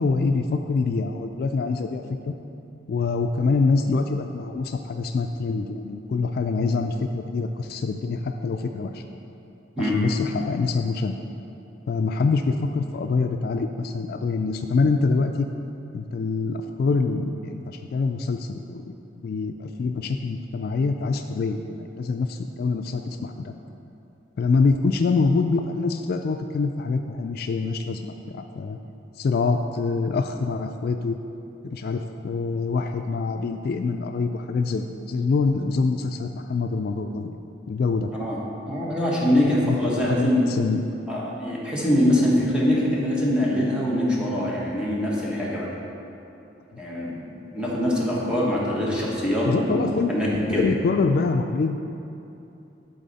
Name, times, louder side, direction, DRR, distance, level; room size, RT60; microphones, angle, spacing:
voice 1, 0.0-2.3 2.9-9.0 9.8-11.1 11.9-15.5 15.9-23.5 24.4-28.8 29.2-31.2 31.6-37.4 37.7-38.1 39.4-40.8 46.7-46.8 49.5-50.1 50.5-51.8, left 4 dB, 55° left, 5 dB, 0.3 m, -25 dB
voice 2, 38.7-40.5 41.1-45.7 46.8-49.8 50.1-50.7, left 1 dB, 5° right, -6 dB, 1.2 m, -23 dB
11.0 x 4.1 x 4.1 m, 2.8 s
head